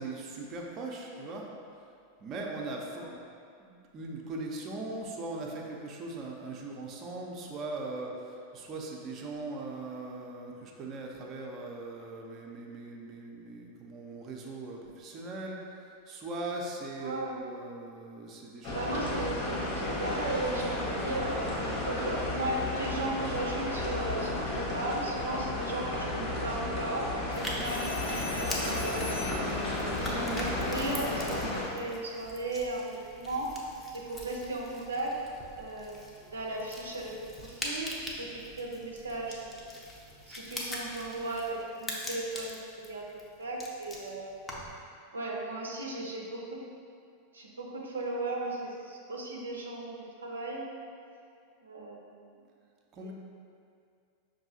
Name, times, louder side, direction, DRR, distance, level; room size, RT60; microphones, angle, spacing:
voice 1, 0.0-1.5 2.2-3.2 3.6-18.9 52.9-53.1, right 2 dB, 35° right, -1 dB, 0.6 m, -40 dB
voice 2, 17.0-17.4 18.7-21.5 21.8-27.9 28.3-29.2 30.0-33.6 33.9-35.2 35.6-36.0 36.3-39.6 40.3-44.4 45.1-46.6 47.3-50.7 51.6-52.4 53.0-53.1, right 2 dB, 85° right, -2 dB, 0.5 m, -36 dB
sound 1, 18.6-31.6, left 2 dB, 45° left, 1.2 m, -33 dB
sound 2, 27.3-44.8, equal, 15° left, 0.7 m, -42 dB
sound 3, 27.6-29.6 32.0-32.3, left 4 dB, 65° left, 0.4 m, -41 dB
5.4 x 2.6 x 2.7 m, 2.3 s
hypercardioid pair, 90°, 0 cm